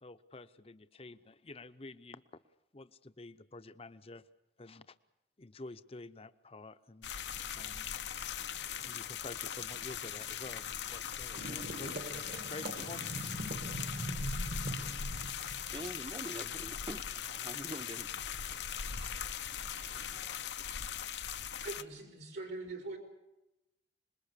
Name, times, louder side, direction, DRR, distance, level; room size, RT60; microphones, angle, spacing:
voice 1, 0.0-2.2 2.7-4.2 4.6-5.0 5.4-7.1 7.5-8.0 8.7-12.0 12.4-13.1, left 2 dB, 35° left, 11 dB, 0.8 m, -49 dB
sound 1, 7.0-21.8, left 8 dB, 75° left, 0.9 m, -40 dB
sound 2, 7.2-20.4, right 1 dB, 60° right, 2.4 m, -46 dB
voice 2, 15.7-18.6 19.5-20.6, right 1 dB, 25° right, 12 dB, 0.9 m, -47 dB
voice 3, 21.6-23.0, right 3 dB, 75° right, 3 dB, 4.3 m, -42 dB
26.0 x 21.5 x 6.8 m, 0.93 s
head